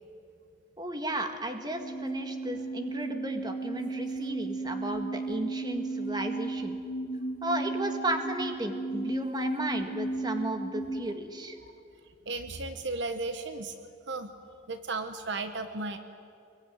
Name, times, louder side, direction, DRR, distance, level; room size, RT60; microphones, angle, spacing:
voice 1, 0.8-6.8 7.4-11.6, right 1 dB, 20° right, 5 dB, 1.9 m, -34 dB
sound 1, 1.5-11.1, right 3 dB, 50° left, 2.3 m, -35 dB
voice 2, 12.3-13.7 14.1-14.3 14.7-16.0, right 3 dB, 55° right, 8 dB, 1.2 m, -34 dB
25.0 x 22.5 x 9.5 m, 2.5 s
head